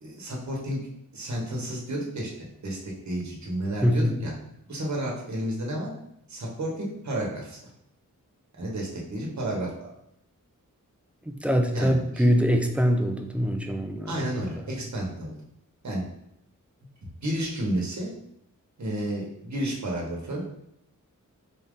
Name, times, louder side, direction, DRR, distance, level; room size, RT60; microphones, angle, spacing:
voice 1, 0.0-0.9 1.1-4.3 4.7-5.9 6.3-7.6 8.5-9.9 11.7-12.3 14.1-15.3 15.8-16.0 17.2-18.1 18.8-20.4, right 1 dB, 60° right, -2 dB, 1.1 m, -31 dB
voice 2, 3.8-4.2 11.2-14.2 14.7-14.8, equal, 5° right, 4 dB, 0.4 m, -23 dB
4.2 x 2.5 x 3.6 m, 0.77 s
wide cardioid pair, 80°, 33 cm